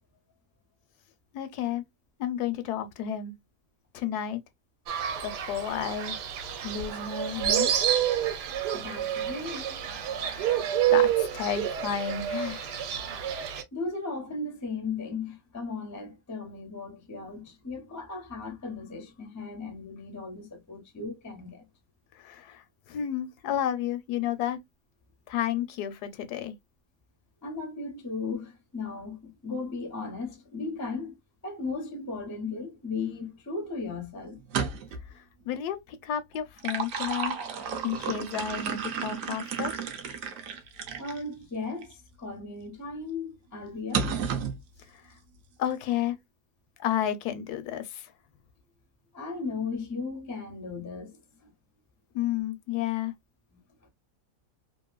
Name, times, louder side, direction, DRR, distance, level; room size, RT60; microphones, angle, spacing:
voice 1, 1.3-1.8 2.2-3.3 3.9-4.4 5.2-6.1 6.6-7.7 10.3-12.7 22.2-24.6 25.3-26.5 35.1-37.4 37.8-39.7 44.9-45.1 45.6-46.2 46.8-48.1 52.1-53.1, left 10 dB, 75° left, 1.1 m, -32 dB
Fowl, 4.9-13.6, right 10 dB, 90° right, 1.2 m, -28 dB
voice 2, 8.7-9.8 13.7-21.6 27.4-31.2 31.4-34.4 41.0-44.2 49.1-51.5 53.8-53.9, left 4 dB, 30° left, 0.3 m, -36 dB
sound 1, 34.4-35.1 36.3-41.2 41.8-41.9 43.9-44.6, right 6 dB, 65° right, 0.9 m, -32 dB
2.9 x 2.5 x 2.2 m
omnidirectional pair, 1.7 m